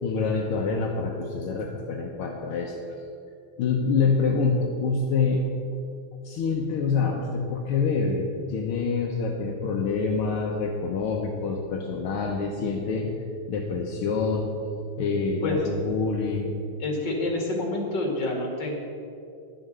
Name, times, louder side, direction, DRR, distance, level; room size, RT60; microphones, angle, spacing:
voice 1, 0.0-2.8 3.6-5.5 6.2-13.1 13.5-14.5 15.0-16.6, left 4 dB, 80° left, 0 dB, 1.9 m, -26 dB
voice 2, 16.8-18.8, left 2 dB, 55° left, 0 dB, 3.0 m, -28 dB
11.5 x 7.9 x 8.0 m, 2.5 s
omnidirectional pair, 2.4 m